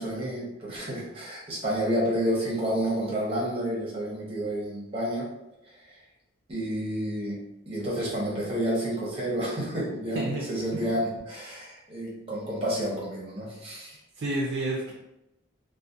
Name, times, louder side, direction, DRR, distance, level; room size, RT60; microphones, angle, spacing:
voice 1, 0.0-5.3 5.9-6.0 6.5-7.4 7.7-14.0, right 1 dB, 30° right, -5 dB, 0.8 m, -30 dB
voice 2, 14.2-14.9, right 2 dB, 60° right, -3 dB, 0.4 m, -29 dB
2.3 x 2.1 x 2.6 m, 0.88 s
head